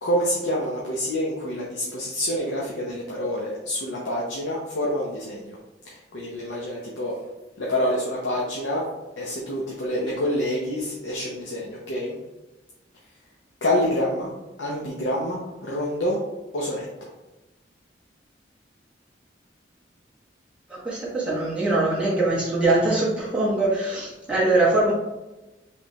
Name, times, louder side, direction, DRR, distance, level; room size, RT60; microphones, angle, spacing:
voice 1, 0.0-5.6 5.8-7.1 7.6-8.9 9.2-12.2 13.6-14.3 14.6-16.2 16.5-16.9, equal, 90° left, -4 dB, 0.8 m, -27 dB
voice 2, 20.7-24.9, right 2 dB, 5° right, -8 dB, 1.5 m, -22 dB
5.2 x 3.3 x 2.9 m, 1.0 s
head